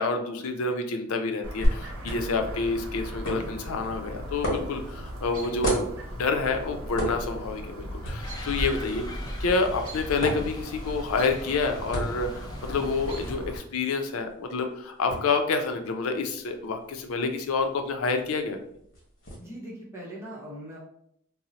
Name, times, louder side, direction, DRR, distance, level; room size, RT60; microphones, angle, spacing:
voice 1, 0.0-5.8 6.1-9.0 9.4-18.6, left 4 dB, 80° left, 6 dB, 0.5 m, -28 dB
Chirp tweet, 1.4-13.6, equal, 90° right, 0.7 m, -39 dB
sound 1, 1.6-19.3, equal, 60° left, 1.1 m, -36 dB
sound 2, 8.2-13.4, equal, 20° left, 0.4 m, -37 dB
voice 2, 19.4-20.8, equal, 10° right, -5 dB, 0.8 m, -40 dB
2.7 x 2.0 x 3.9 m, 0.72 s
head